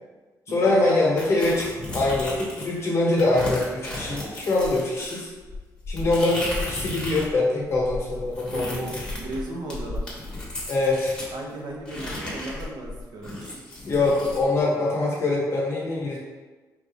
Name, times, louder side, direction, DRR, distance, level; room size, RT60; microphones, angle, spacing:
voice 1, 0.5-1.6 1.9-5.3 5.9-8.9 10.7-11.1 13.9-16.2, left 2 dB, 40° left, -4 dB, 1.0 m, -23 dB
sound 1, 1.2-2.8 3.2-7.3 7.6-11.3 11.8-14.4, left 1 dB, 10° left, 1.0 m, -34 dB
voice 2, 8.4-10.1 11.3-13.6, right 2 dB, 85° right, -1 dB, 0.8 m, -36 dB
4.8 x 2.7 x 3.4 m, 1.3 s
wide cardioid pair, 175°, 7 cm